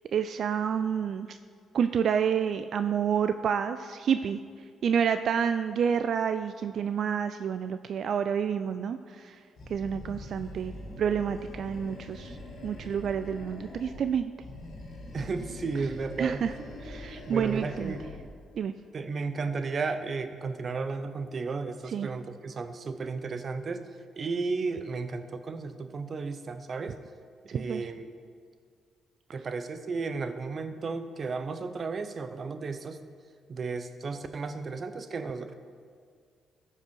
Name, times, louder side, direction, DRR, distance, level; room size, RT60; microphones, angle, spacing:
voice 1, 0.1-1.4 1.7-4.4 4.8-9.4 9.7-10.7 11.0-12.4 12.6-14.3 16.2-16.5 16.8-17.9 18.5-18.7 21.9-22.1 27.5-27.9, right 7 dB, 60° right, 10 dB, 0.3 m, -29 dB
Animal, 9.6-14.1 14.4-18.3, left 1 dB, 60° left, 2.3 m, -43 dB
voice 2, 15.1-16.5 17.3-18.0 18.9-23.9 24.2-27.0 27.4-28.1 29.3-33.0 33.5-35.5, right 4 dB, 45° right, 9 dB, 0.7 m, -34 dB
13.5 x 5.6 x 5.4 m, 2.1 s
cardioid pair, 90°, 0 cm